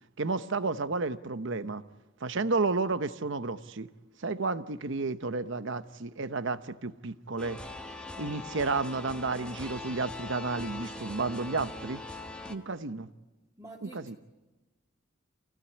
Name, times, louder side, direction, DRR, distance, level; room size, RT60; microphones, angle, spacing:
voice 1, 0.2-1.8 2.2-3.9 4.2-7.6 8.2-12.0 12.5-13.1 13.8-14.1, right 3 dB, 65° right, 0.9 m, -32 dB
sound 1, 7.4-12.6, left 2 dB, 5° left, 1.5 m, -41 dB
voice 2, 13.6-14.2, right 1 dB, 15° right, 2.2 m, -48 dB
26.5 x 16.5 x 9.8 m
head